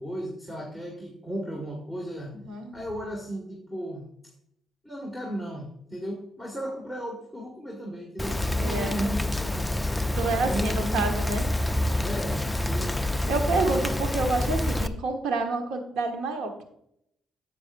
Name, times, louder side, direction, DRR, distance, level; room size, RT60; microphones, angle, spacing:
voice 1, 0.0-2.4 2.7-4.1 4.8-9.8 10.4-11.0 12.0-13.0 13.5-13.9, right 1 dB, 10° right, -2 dB, 1.9 m, -35 dB
Rain, 8.2-14.9, left 1 dB, 5° left, 0.5 m, -27 dB
voice 2, 8.6-9.0 10.1-11.4 13.3-16.6, right 3 dB, 85° right, 5 dB, 1.4 m, -28 dB
9.9 x 8.1 x 2.6 m, 0.74 s
cardioid pair, 90°, 0 cm